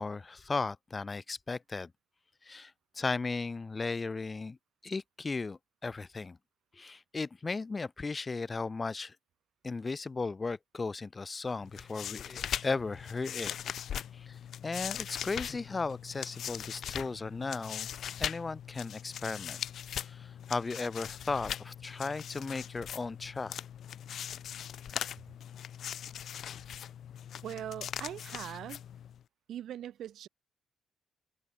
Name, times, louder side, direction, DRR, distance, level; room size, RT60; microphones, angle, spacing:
voice 1, 0.0-1.9 2.4-4.6 4.8-6.4 6.7-9.2 9.6-13.5 14.1-17.9 18.2-19.6 20.0-23.6, left 4 dB, 25° left, 5.9 m, -36 dB
sound 1, 11.6-29.2, left 9 dB, 65° left, 1.8 m, -40 dB
voice 2, 27.4-28.8 29.5-30.3, right 11 dB, 70° right, 6.5 m, -41 dB
cardioid pair, 90°, 0 cm